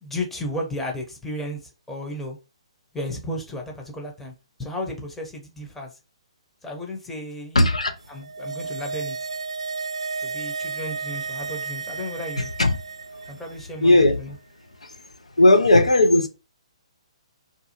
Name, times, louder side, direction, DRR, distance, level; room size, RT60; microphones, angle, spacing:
voice 1, 0.0-2.4 2.9-4.3 4.6-6.0 6.6-7.7 8.1-9.2 10.2-12.5 13.3-14.3, left 1 dB, 5° left, 0.7 m, -34 dB
voice 2, 7.5-7.9 12.6-12.8 13.8-14.2 14.8-14.9 15.4-16.3, left 2 dB, 85° left, 0.5 m, -16 dB
sound 1, 8.1-13.5 13.8-13.9, right 4 dB, 75° right, 0.3 m, -32 dB
2.5 x 2.2 x 2.8 m
figure-of-eight pair, 130°, 3 cm